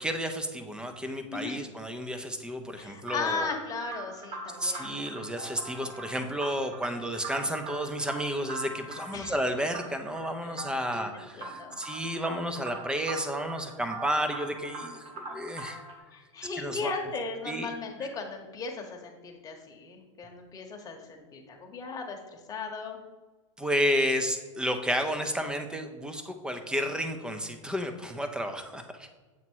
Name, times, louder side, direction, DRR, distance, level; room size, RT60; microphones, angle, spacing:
voice 1, 0.0-3.6 4.6-15.8 16.4-16.9 17.5-17.7 23.6-29.1, equal, 5° right, 6 dB, 0.5 m, -31 dB
voice 2, 1.3-1.6 2.8-5.0 9.1-9.4 10.4-10.6 10.9-11.1 11.3-11.8 16.1-23.0, left 4 dB, 20° left, 2 dB, 1.0 m, -37 dB
sound 1, 3.0-16.0, right 3 dB, 35° right, 1.3 m, -42 dB
7.2 x 2.9 x 4.5 m, 1.3 s
hypercardioid pair, 115°, 17 cm